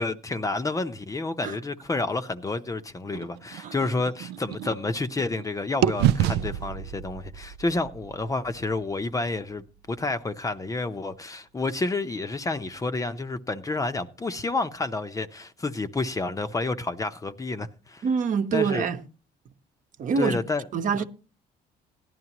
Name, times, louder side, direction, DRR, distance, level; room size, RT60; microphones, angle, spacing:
voice 1, 0.0-18.0 18.5-18.9 20.2-20.6 20.9-21.0, left 3 dB, 20° left, 0.7 m, -29 dB
sound 1, 3.1-5.4 5.8-9.8, right 11 dB, 85° right, 0.5 m, -29 dB
voice 2, 18.0-19.0 20.0-20.4 20.7-21.0, right 6 dB, 50° right, 1.0 m, -25 dB
17.0 x 11.0 x 3.0 m
cardioid pair, 110°, 17 cm